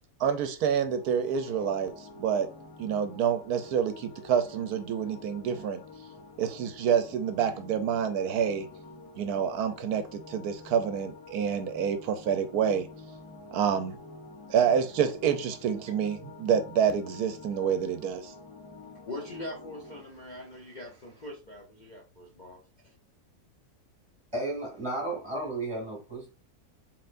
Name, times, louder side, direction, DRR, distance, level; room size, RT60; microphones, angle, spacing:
voice 1, 0.2-2.5 2.8-5.8 6.4-8.7 9.2-12.9 13.5-14.0 14.5-18.3, right 8 dB, 80° right, 1.1 m, -28 dB
sound 1, 0.6-20.0, left 3 dB, 75° left, 1.4 m, -48 dB
voice 2, 19.1-22.6, left 1 dB, 40° left, 0.8 m, -42 dB
voice 3, 24.3-26.3, right 2 dB, 20° right, 2.2 m, -33 dB
4.3 x 3.9 x 2.5 m
omnidirectional pair, 1.6 m